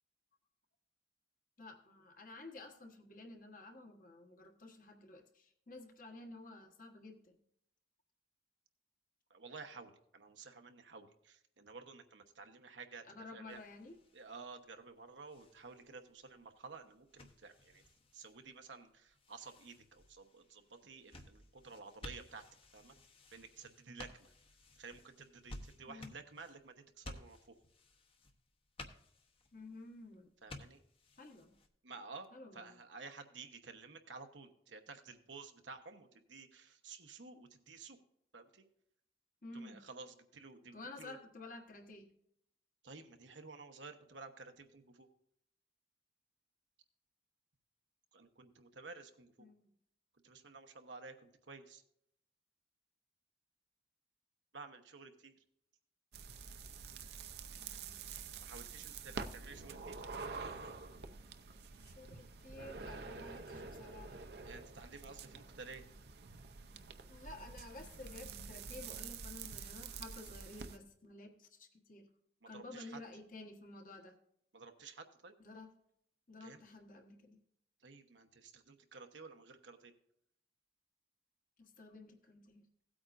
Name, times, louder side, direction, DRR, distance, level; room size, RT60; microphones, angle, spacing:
voice 1, 1.6-7.4 13.0-14.0 25.9-26.1 29.5-30.3 31.2-31.6 32.3-32.8 39.4-39.9 40.7-42.1 49.4-49.7 57.6-58.0 61.8-64.3 67.1-72.1 72.5-74.1 75.4-75.7 76.3-77.4 81.6-82.7, left 2 dB, 45° left, 4 dB, 1.3 m, -52 dB
voice 2, 9.3-13.0 13.3-13.6 14.1-17.8 18.1-22.4 22.7-22.9 23.3-24.3 24.7-27.4 30.4-30.8 31.8-38.0 38.3-38.6 39.5-41.2 42.8-45.1 48.1-49.5 50.2-51.8 54.5-55.4 58.4-60.0 64.4-65.8 72.4-73.0 74.5-75.3 76.4-76.6 77.8-79.9, right 4 dB, 85° right, 6 dB, 1.1 m, -53 dB
sound 1, 13.5-31.7, left 1 dB, 30° left, 0.9 m, -56 dB
sound 2, 56.1-70.8, right 4 dB, 60° right, 0.6 m, -48 dB
16.5 x 8.7 x 2.6 m, 0.73 s
head